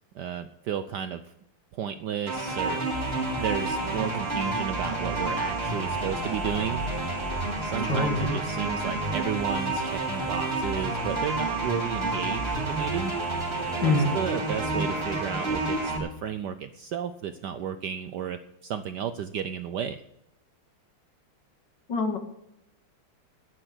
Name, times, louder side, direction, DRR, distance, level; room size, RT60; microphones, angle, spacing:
voice 1, 0.1-1.2 1.7-2.8 3.4-6.9 7.6-13.1 13.8-20.0, right 8 dB, 70° right, 11 dB, 1.0 m, -33 dB
sound 1, 2.3-16.0, right 2 dB, 25° right, 3.7 m, -29 dB
voice 2, 7.8-8.4 13.8-14.2 21.9-22.2, left 3 dB, 55° left, 5 dB, 2.4 m, -25 dB
sound 2, 13.6-15.7, right 7 dB, 5° right, 3.0 m, -44 dB
10.5 x 10.0 x 7.9 m, 0.81 s
omnidirectional pair, 2.4 m